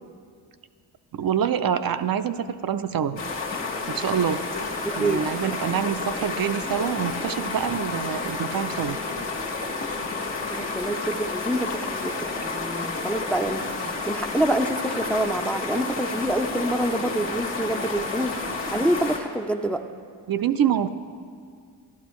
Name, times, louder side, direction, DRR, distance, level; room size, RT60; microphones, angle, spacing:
voice 1, 1.1-3.2 3.9-4.5 5.0-9.0 20.3-20.9, right 8 dB, 55° right, 10 dB, 0.5 m, -26 dB
sound 1, 3.2-19.2, left 3 dB, 75° left, 1.5 m, -30 dB
voice 2, 4.8-5.2 10.5-12.1 12.4-18.3 18.7-19.8, right 1 dB, 5° left, 6 dB, 0.5 m, -26 dB
12.5 x 11.5 x 3.1 m, 2.2 s
cardioid pair, 50°, 43 cm